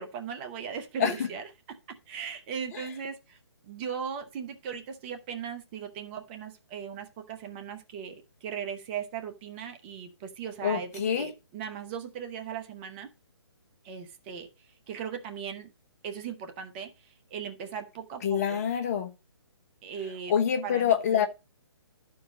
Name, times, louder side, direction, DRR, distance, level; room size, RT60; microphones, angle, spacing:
voice 1, 0.0-1.4 2.1-3.4 3.6-10.9 11.2-13.1 13.8-14.5 14.9-15.7 16.0-16.9 17.3-18.6 19.8-20.3 20.6-21.3, right 7 dB, 25° right, 0.9 m, -38 dB
voice 2, 1.0-1.3 2.7-2.9 10.6-11.3 18.2-19.1 20.3-21.3, left 8 dB, 35° left, 1.3 m, -26 dB
12.5 x 4.7 x 5.1 m
figure-of-eight pair, 135°, 14 cm